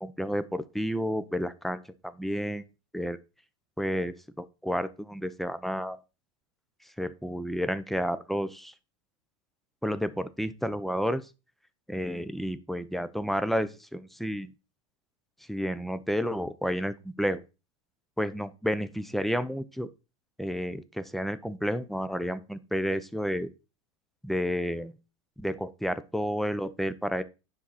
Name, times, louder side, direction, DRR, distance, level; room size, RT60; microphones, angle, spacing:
voice 1, 0.0-2.7 2.9-3.2 3.8-6.0 7.0-8.7 9.8-11.2 11.9-14.5 15.5-17.4 18.2-19.9 20.4-23.5 24.2-24.9 25.4-27.2, equal, ahead, 0.7 m, -31 dB
10.5 x 5.9 x 4.1 m
supercardioid pair, 130°, 16 cm